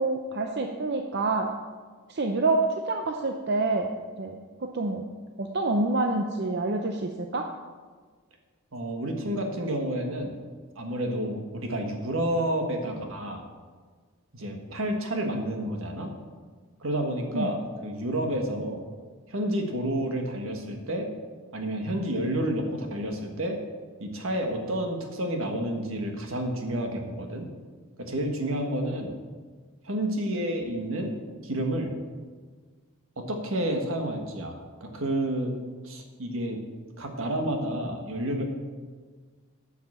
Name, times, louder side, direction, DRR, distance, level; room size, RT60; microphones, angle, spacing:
voice 1, 0.0-1.5 2.1-3.9 4.2-5.1 5.4-7.5 17.3-17.5, right 2 dB, 50° right, 3 dB, 0.6 m, -27 dB
voice 2, 8.7-10.4 10.8-13.4 14.3-16.1 16.8-18.8 19.3-21.1 21.5-23.6 24.0-27.5 28.0-29.1 29.8-31.1 31.4-31.9 33.2-35.5 35.8-36.6 37.0-38.4, right 1 dB, 75° right, 3 dB, 1.6 m, -30 dB
11.0 x 5.8 x 7.2 m, 1.5 s
head